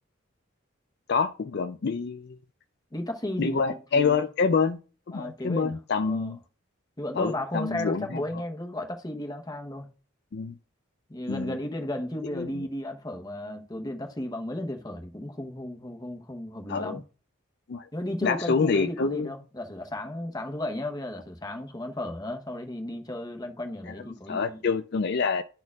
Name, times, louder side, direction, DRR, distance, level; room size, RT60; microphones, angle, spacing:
voice 1, 1.1-2.4 3.4-4.8 5.1-6.4 7.1-8.2 10.3-10.6 11.3-11.6 12.3-12.7 16.7-17.0 17.7-17.9 18.2-19.3 23.9-24.0 24.3-25.4, left 5 dB, 55° left, 0.4 m, -27 dB
voice 2, 2.9-4.2 5.1-5.8 6.0-6.3 7.0-9.9 11.1-17.0 17.9-24.6, left 1 dB, 20° left, 0.9 m, -34 dB
12.0 x 4.3 x 2.4 m
head